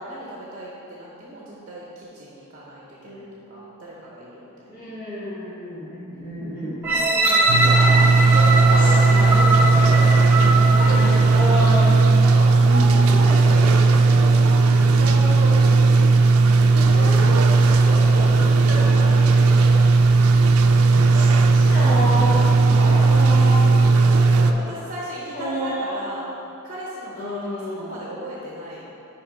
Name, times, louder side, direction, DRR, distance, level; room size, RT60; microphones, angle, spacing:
voice 1, 0.0-4.8 6.8-7.9 8.3-11.6 12.2-16.1 16.8-17.1 17.7-19.8 22.6-26.3 26.6-27.3 27.8-28.8, right 1 dB, 40° right, -5 dB, 0.9 m, -34 dB
voice 2, 3.0-3.6 4.7-6.8 7.6-8.1 8.7-9.3 10.6-11.9 12.6-13.2 16.7-17.3 21.1-22.4 22.7-23.7 25.3-26.0 27.1-27.9, equal, 45° left, -11 dB, 1.3 m, -30 dB
sound 1, 6.8-11.8 12.3-12.4, right 2 dB, 10° right, 0.8 m, -22 dB
sound 2, 7.5-24.5, right 3 dB, 70° right, 0.4 m, -16 dB
5.7 x 4.6 x 5.1 m, 2.7 s
head